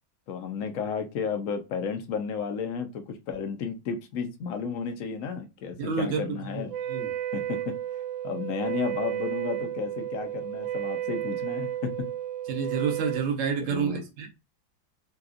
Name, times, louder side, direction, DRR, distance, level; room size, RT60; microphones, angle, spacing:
voice 1, 0.3-6.7 7.3-7.7 8.2-11.9 13.6-14.0, left 6 dB, 75° left, 7 dB, 0.7 m, -33 dB
voice 2, 5.8-7.1 12.5-14.3, right 6 dB, 55° right, 4 dB, 0.9 m, -29 dB
Wind instrument woodwind instrument, 6.7-13.3, right 12 dB, 80° right, 1.4 m, -32 dB
4.0 x 2.3 x 2.4 m, 0.26 s
omnidirectional pair, 2.1 m